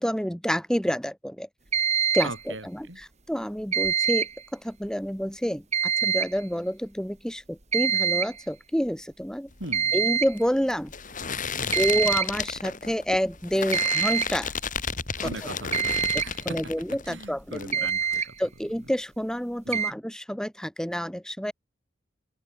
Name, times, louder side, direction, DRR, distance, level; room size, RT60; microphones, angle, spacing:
voice 1, 0.0-1.5 2.1-9.5 9.9-10.9 11.8-14.5 15.2-15.5 16.5-17.9 18.4-21.5, equal, 5° left, 2.2 m, -28 dB
sound 1, 1.7-2.4 3.7-4.4 5.7-6.4 7.7-8.4 9.7-10.4 11.7-12.4 13.7-14.4 15.7-16.3 17.4-17.5 17.7-18.3 19.7-19.9, right 7 dB, 35° right, 3.0 m, -25 dB
voice 2, 2.2-3.0 9.6-10.0 11.6-11.8 15.2-16.6 17.0-18.3 19.7-19.8, right 2 dB, 75° right, 7.5 m, -39 dB
sound 2, 9.5-17.3 17.5-18.2, left 6 dB, 45° left, 3.7 m, -33 dB
open air
head